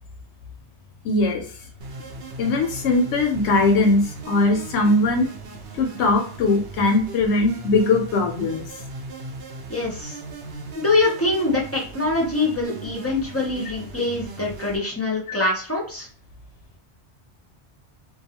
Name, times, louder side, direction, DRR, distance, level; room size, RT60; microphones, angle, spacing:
voice 1, 1.0-1.4 2.4-5.3 5.7-8.6 15.3-15.4, left 2 dB, 80° left, 3 dB, 0.9 m, -20 dB
sound 1, 1.8-14.8, right 3 dB, 65° right, 0.8 m, -38 dB
voice 2, 9.7-10.2 10.7-16.1, left 2 dB, 15° left, -3 dB, 0.5 m, -24 dB
2.4 x 2.3 x 2.8 m, 0.43 s
omnidirectional pair, 1.2 m